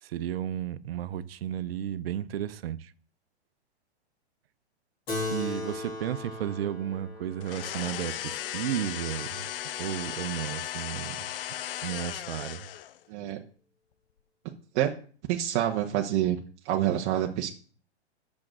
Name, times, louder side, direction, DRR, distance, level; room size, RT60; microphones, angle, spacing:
voice 1, 0.0-2.9 5.3-9.5 9.8-11.3 11.8-12.7, right 11 dB, 60° right, 0.8 m, -33 dB
Keyboard (musical), 5.1-9.9, left 2 dB, 25° left, 2.3 m, -38 dB
sound 1, 7.4-13.0, left 12 dB, 55° left, 0.6 m, -36 dB
voice 2, 15.3-16.4 16.6-17.5, right 12 dB, 25° right, 0.8 m, -27 dB
8.5 x 6.5 x 6.2 m
hypercardioid pair, 145°, 34 cm